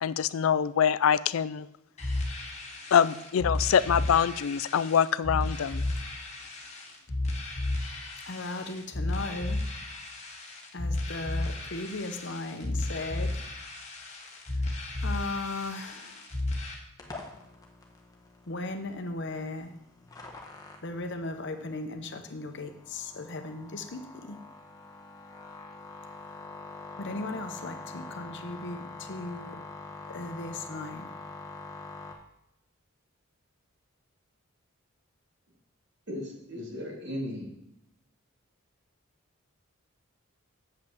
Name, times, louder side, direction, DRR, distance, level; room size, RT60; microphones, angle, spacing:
voice 1, 0.0-1.7 2.9-5.9, left 8 dB, 75° left, 16 dB, 0.4 m, -24 dB
sound 1, 2.0-16.7, left 2 dB, 30° left, 1.4 m, -33 dB
voice 2, 8.3-9.6 10.7-13.5 14.3-14.5 15.0-16.3 18.5-19.7 20.8-24.4 27.0-29.6 30.1-31.1, left 2 dB, 55° left, 7 dB, 0.9 m, -37 dB
sound 2, 17.0-32.1, left 3 dB, 15° left, 1.1 m, -45 dB
voice 3, 36.1-37.5, left 1 dB, 55° right, -1 dB, 2.5 m, -36 dB
7.7 x 5.4 x 7.2 m, 0.82 s
head